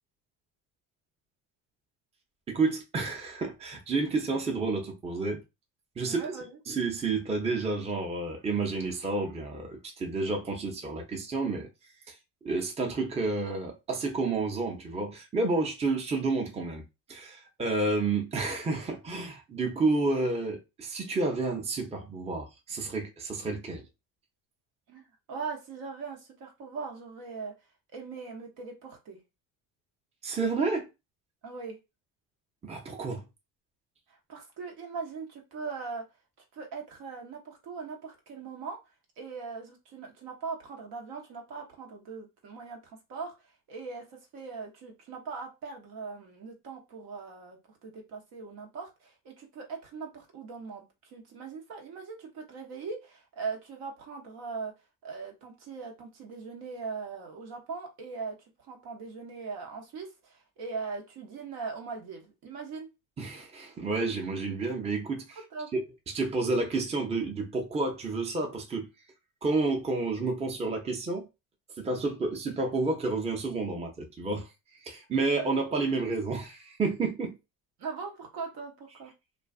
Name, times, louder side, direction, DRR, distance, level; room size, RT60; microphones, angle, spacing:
voice 1, 2.5-5.4 6.0-6.2 6.7-11.7 12.1-12.2 12.4-16.8 17.1-23.8 30.2-30.9 32.6-33.2 63.2-65.4 65.7-65.8 66.1-68.9 69.4-71.3 71.8-74.5 74.8-77.3, right 3 dB, 15° right, 0.6 m, -30 dB
voice 2, 6.1-6.6 24.9-27.5 27.9-29.2 31.4-31.8 34.1-36.0 36.5-38.8 39.2-54.7 55.0-62.9 65.5-65.7 77.8-79.1, right 4 dB, 65° right, 1.1 m, -40 dB
2.4 x 2.3 x 2.3 m
supercardioid pair, 85°, 41 cm